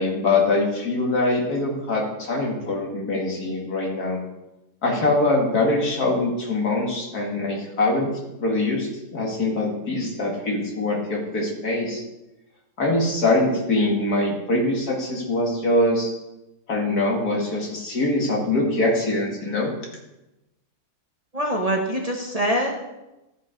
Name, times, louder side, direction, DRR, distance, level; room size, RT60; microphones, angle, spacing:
voice 1, 0.0-4.2 4.8-8.1 8.4-12.0 12.8-16.1 16.7-19.7, left 2 dB, 75° left, -1 dB, 2.5 m, -23 dB
voice 2, 21.3-22.9, equal, 30° right, 0 dB, 1.0 m, -24 dB
13.0 x 5.3 x 5.1 m, 0.98 s
omnidirectional pair, 1.6 m